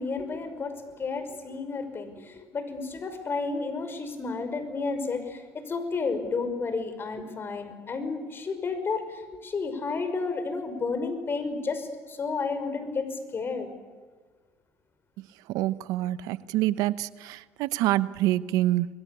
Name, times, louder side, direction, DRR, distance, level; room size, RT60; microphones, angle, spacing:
voice 1, 0.0-13.7, left 4 dB, 35° left, 10 dB, 5.8 m, -32 dB
voice 2, 15.5-18.9, right 15 dB, 75° right, 16 dB, 0.9 m, -26 dB
29.0 x 22.5 x 8.6 m, 1.5 s
supercardioid pair, 80°, 6 cm